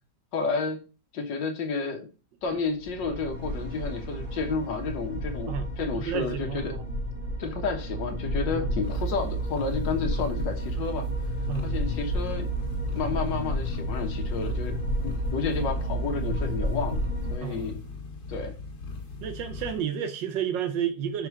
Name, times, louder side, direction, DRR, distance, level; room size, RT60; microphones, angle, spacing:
voice 1, 0.3-0.8 1.1-2.1 2.4-6.7 7.4-11.1 11.6-12.5 12.9-17.0 17.3-17.8 18.3-18.5, left 4 dB, 85° left, 1.8 m, -31 dB
sound 1, 2.8-17.4, equal, 55° right, 3.2 m, -31 dB
voice 2, 5.9-6.8 8.6-8.7 11.5-11.7 17.4-17.7 19.2-21.3, right 8 dB, 85° right, 1.4 m, -31 dB
sound 2, 8.8-19.8, left 3 dB, 70° left, 2.3 m, -39 dB
6.1 x 4.9 x 4.6 m
omnidirectional pair, 1.9 m